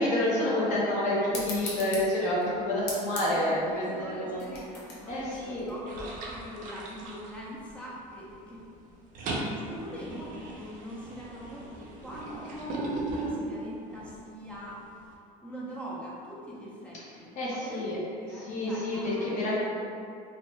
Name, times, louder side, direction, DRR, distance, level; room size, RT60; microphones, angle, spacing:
voice 1, 0.0-4.4 5.1-5.7 17.4-18.0 18.4-19.6, left 1 dB, 45° left, -7 dB, 0.8 m, -28 dB
sound 1, 1.3-6.4, left 3 dB, 80° left, 0.6 m, -41 dB
voice 2, 3.3-8.6 9.6-12.9 13.2-14.8 15.4-19.6, equal, 5° left, -6 dB, 0.5 m, -43 dB
sound 2, 5.1-5.5 5.9-8.0 8.3-8.6 8.9-14.2, right 2 dB, 50° right, 0.5 m, -37 dB
2.7 x 2.1 x 3.1 m, 2.5 s
cardioid pair, 135°, 17 cm